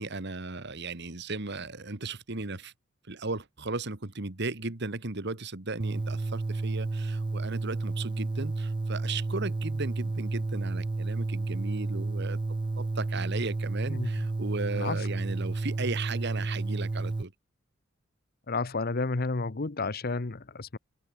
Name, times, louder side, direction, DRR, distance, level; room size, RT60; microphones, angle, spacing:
voice 1, 0.0-2.7 3.1-12.4 12.8-17.3, right 3 dB, 55° right, 1.8 m, -36 dB
sound 1, 5.8-17.2, right 3 dB, 25° right, 0.3 m, -31 dB
voice 2, 18.5-20.8, left 3 dB, 50° left, 0.9 m, -31 dB
open air
head